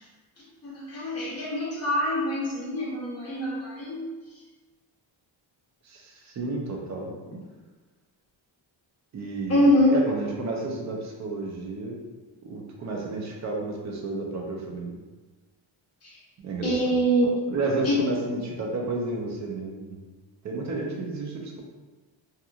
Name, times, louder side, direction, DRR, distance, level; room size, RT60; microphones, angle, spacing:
voice 1, 0.6-4.1 9.5-9.9 16.6-17.3 17.8-17.9, equal, 30° left, -7 dB, 0.8 m, -24 dB
voice 2, 5.8-7.1 9.1-12.0 12.4-15.0 16.4-17.0 17.5-20.0 20.4-21.6, right 2 dB, 40° right, -1 dB, 0.5 m, -31 dB
2.8 x 2.4 x 2.3 m, 1.3 s
wide cardioid pair, 155°, 48 cm